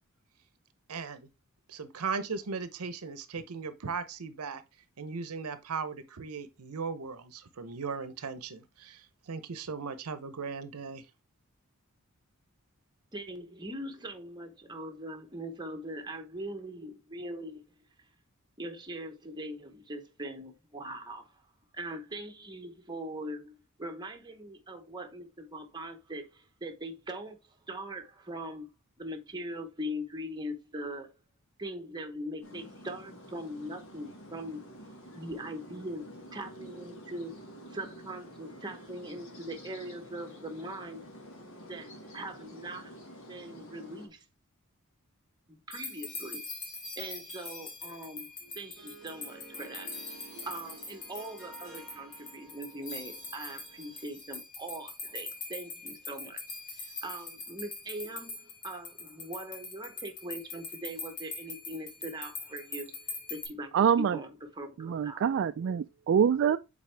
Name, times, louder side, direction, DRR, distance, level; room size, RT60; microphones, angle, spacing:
voice 1, 0.9-1.3 1.7-4.6 5.0-11.1, right 5 dB, 80° right, 0.7 m, -37 dB
voice 2, 13.1-17.6 18.6-21.4 21.7-28.7 29.0-31.1 31.6-34.6 35.1-37.3 37.7-41.0 41.6-42.9 43.3-44.2 45.5-46.4 47.0-48.3 48.6-50.0 50.4-56.4 56.8-63.0 63.3-63.7 64.0-65.2, right 1 dB, 20° right, 0.9 m, -41 dB
sound 1, 32.4-44.1, equal, 65° left, 1.9 m, -49 dB
sound 2, 45.7-63.5, left 3 dB, 35° left, 2.2 m, -43 dB
Harp, 48.4-54.2, right 3 dB, ahead, 3.9 m, -52 dB
voice 3, 63.7-64.2 64.8-66.6, right 7 dB, 55° right, 0.3 m, -25 dB
7.5 x 4.1 x 3.3 m
head